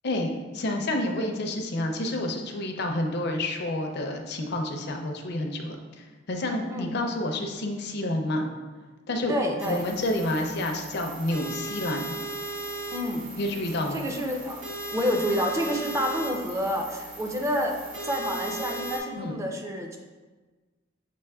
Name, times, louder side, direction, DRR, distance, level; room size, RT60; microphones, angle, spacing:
voice 1, 0.0-8.5 9.1-9.4 9.7-12.1 13.4-14.0 19.1-19.4, left 1 dB, 60° left, 3 dB, 0.5 m, -29 dB
voice 2, 9.3-9.9 12.9-13.3 13.9-14.6 14.9-17.8 18.0-20.0, equal, 15° right, 2 dB, 0.5 m, -28 dB
sound 1, 9.6-19.0, right 2 dB, 70° right, 1.2 m, -37 dB
6.8 x 2.9 x 2.3 m, 1.3 s
head